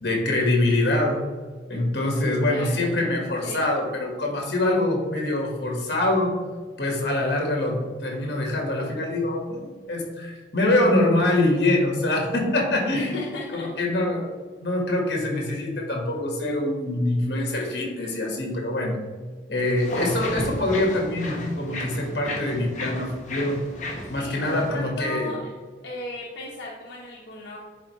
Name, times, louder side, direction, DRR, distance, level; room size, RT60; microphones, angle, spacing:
voice 1, 0.0-1.2 1.7-6.4 6.8-13.2 13.5-14.3 14.6-19.0 19.5-23.6 24.1-25.4, left 1 dB, 65° left, 0 dB, 1.8 m, -24 dB
voice 2, 2.4-3.7 12.9-13.7 24.1-25.4 25.8-27.6, left 1 dB, 80° left, -4 dB, 1.1 m, -36 dB
sound 1, 19.8-24.9, left 1 dB, 40° left, 1.3 m, -33 dB
10.5 x 4.3 x 3.2 m, 1.5 s
head